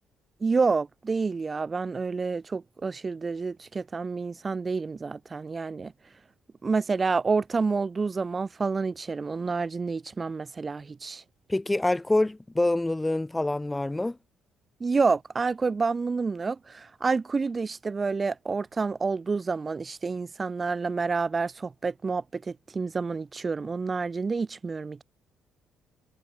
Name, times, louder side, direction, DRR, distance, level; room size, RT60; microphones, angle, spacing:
voice 1, 0.4-5.9 6.6-11.2 14.8-25.0, right 4 dB, 35° right, 5.4 m, -28 dB
voice 2, 11.5-14.2, left 2 dB, 15° left, 2.2 m, -26 dB
hypercardioid pair, 50°, 0 cm